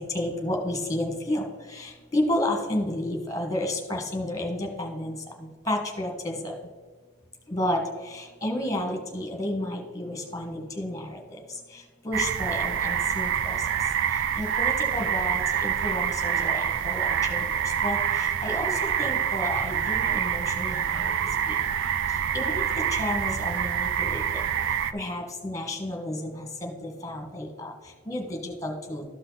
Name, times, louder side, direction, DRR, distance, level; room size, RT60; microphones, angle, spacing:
voice 1, 0.1-1.4 1.7-5.1 5.4-6.5 7.5-7.8 8.1-11.4 12.0-13.6 14.4-17.5 17.8-18.7 19.0-21.1 21.5-21.6 22.3-22.6 22.9-24.4 24.9-27.7 28.1-29.0, left 1 dB, 15° left, 2 dB, 1.7 m, -31 dB
sound 1, 12.1-24.9, right 8 dB, 55° right, 0.5 m, -26 dB
13.0 x 5.6 x 4.1 m, 1.4 s
head